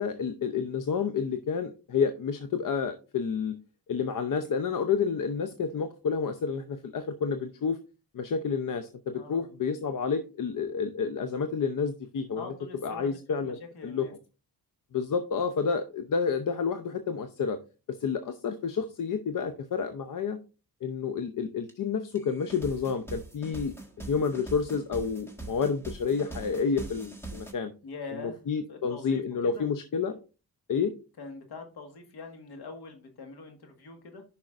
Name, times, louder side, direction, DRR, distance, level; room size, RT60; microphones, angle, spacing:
voice 1, 0.0-3.5 3.9-7.8 8.1-12.5 12.8-14.1 14.9-17.6 17.9-20.4 20.8-27.7 28.1-30.2 30.7-30.9, left 6 dB, 55° left, 9 dB, 0.7 m, -30 dB
voice 2, 9.1-9.5 12.3-13.2 13.4-14.1 27.8-28.4 28.7-29.2 29.5-29.7 31.2-34.2, left 4 dB, 85° left, 5 dB, 1.8 m, -43 dB
sound 1, 21.7-21.8 22.2-27.5, right 2 dB, 5° left, 1.6 m, -42 dB
10.5 x 5.6 x 2.5 m, 0.33 s
cardioid pair, 75°, 38 cm